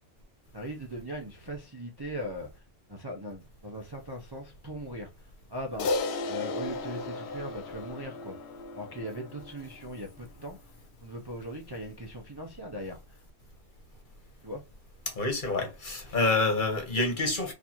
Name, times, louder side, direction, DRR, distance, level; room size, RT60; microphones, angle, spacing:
voice 1, 0.5-2.6 2.9-5.1 5.5-5.9 6.3-8.4 8.7-10.6 11.0-13.2 14.4-14.6, equal, 25° right, 0.5 m, -39 dB
Crash cymbal, 5.8-10.4, left 3 dB, 65° left, 0.8 m, -35 dB
voice 2, 15.1-17.5, left 3 dB, 45° left, 1.1 m, -27 dB
4.1 x 2.7 x 2.9 m
omnidirectional pair, 1.3 m